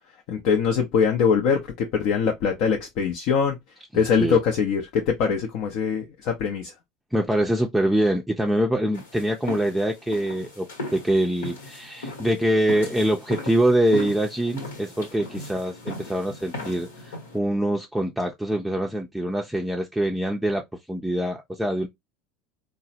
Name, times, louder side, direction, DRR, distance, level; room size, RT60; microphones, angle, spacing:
voice 1, 0.3-3.6 3.9-6.7, left 6 dB, 60° left, 0.6 m, -23 dB
voice 2, 3.9-4.4 7.1-21.9, right 1 dB, 5° right, 0.5 m, -24 dB
sound 1, 8.9-17.4, left 2 dB, 80° left, 1.1 m, -37 dB
3.7 x 2.1 x 2.7 m
hypercardioid pair, 75°, 0 cm